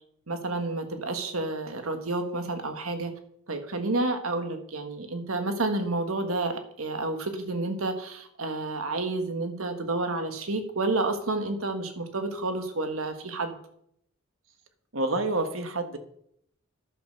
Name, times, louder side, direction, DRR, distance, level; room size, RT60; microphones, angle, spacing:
voice 1, 0.3-3.1 3.5-13.6, right 2 dB, 85° right, 7 dB, 1.6 m, -30 dB
voice 2, 14.9-16.0, right 2 dB, 65° right, 8 dB, 1.4 m, -28 dB
11.0 x 6.7 x 6.5 m, 0.71 s
head